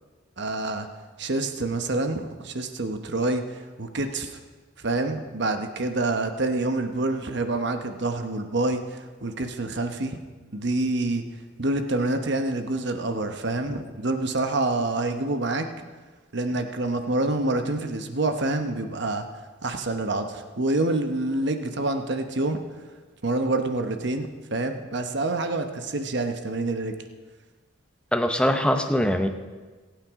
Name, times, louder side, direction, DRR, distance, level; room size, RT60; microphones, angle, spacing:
voice 1, 0.4-0.9 1.2-4.4 4.8-10.2 10.5-11.2 11.6-15.7 16.3-19.2 19.6-22.6 23.2-27.0, right 2 dB, 60° right, 6 dB, 1.0 m, -27 dB
voice 2, 28.1-29.3, equal, 5° left, 6 dB, 0.7 m, -22 dB
21.0 x 9.0 x 3.7 m, 1.4 s
head